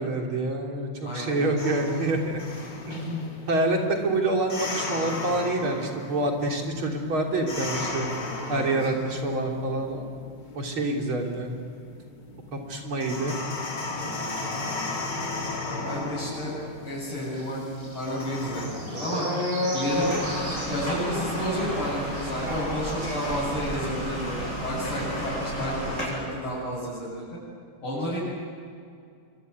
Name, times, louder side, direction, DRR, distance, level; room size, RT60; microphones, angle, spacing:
voice 1, 0.0-2.4 2.9-8.1 8.5-10.1 10.5-11.6 12.5-13.4, right 2 dB, 70° right, 1 dB, 4.2 m, -27 dB
voice 2, 1.0-1.6 8.5-8.9 13.9-14.7 15.6-16.5 16.8-17.6 17.9-19.3 19.7-20.2 20.6-27.2 27.8-28.2, equal, 75° left, -9 dB, 8.5 m, -31 dB
sound 1, 1.6-18.7, left 3 dB, 55° left, 4.1 m, -36 dB
sound 2, 17.3-24.0 24.3-24.5 24.8-25.0, left 1 dB, 40° right, 6.4 m, -33 dB
sound 3, 19.9-26.1, equal, 35° left, 8.5 m, -32 dB
26.0 x 24.5 x 9.5 m, 2.4 s
omnidirectional pair, 2.4 m